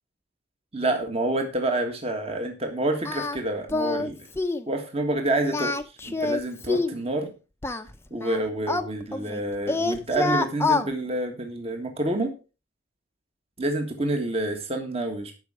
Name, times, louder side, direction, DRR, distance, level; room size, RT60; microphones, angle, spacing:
voice 1, 0.7-4.3 4.7-5.8 6.0-7.3 8.1-12.3 13.6-15.3, right 1 dB, 30° right, 4 dB, 1.7 m, -28 dB
Singing, 3.0-3.4 3.7-4.1 4.4-4.7 5.4-7.0 7.6-9.4 9.7-10.9, left 3 dB, 15° left, 0.7 m, -26 dB
11.5 x 5.6 x 5.0 m, 0.32 s
head